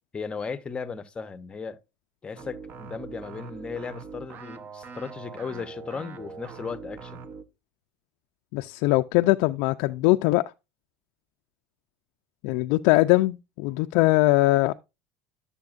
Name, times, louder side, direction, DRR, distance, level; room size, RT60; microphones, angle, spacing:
voice 1, 0.1-1.8 2.2-7.2, left 5 dB, 15° left, 0.7 m, -36 dB
sound 1, 2.4-7.4, right 5 dB, 35° right, 0.8 m, -42 dB
voice 2, 8.5-10.4 12.4-14.7, left 19 dB, 65° left, 0.3 m, -21 dB
11.5 x 6.8 x 2.4 m
supercardioid pair, 140°, 6 cm